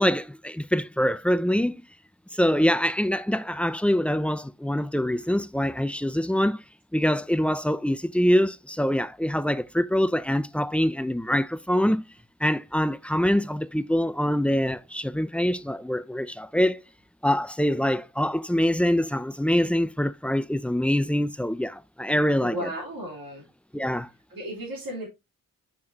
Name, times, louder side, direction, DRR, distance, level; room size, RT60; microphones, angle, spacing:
voice 1, 0.0-1.8 2.3-6.6 6.9-12.0 12.4-16.8 17.2-22.7 23.7-24.1, equal, 5° left, 0.3 m, -24 dB
voice 2, 22.4-23.4 24.3-25.1, equal, 85° right, 3.2 m, -34 dB
7.4 x 5.8 x 2.8 m
wide cardioid pair, 105°, 34 cm